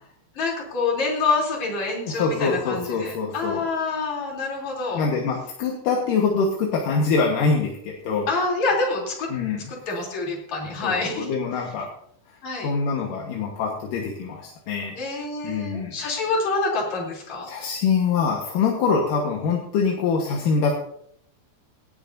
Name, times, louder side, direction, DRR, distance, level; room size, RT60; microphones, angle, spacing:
voice 1, 0.3-5.0 8.3-9.3 9.7-11.3 12.4-12.7 15.0-17.5, left 3 dB, 45° left, -2 dB, 4.3 m, -26 dB
voice 2, 2.1-3.6 4.9-8.3 9.3-9.6 10.8-11.9 12.6-15.0 15.4-15.9 17.4-20.8, left 5 dB, 60° left, 0 dB, 2.6 m, -24 dB
18.0 x 10.5 x 2.7 m, 0.67 s
omnidirectional pair, 4.9 m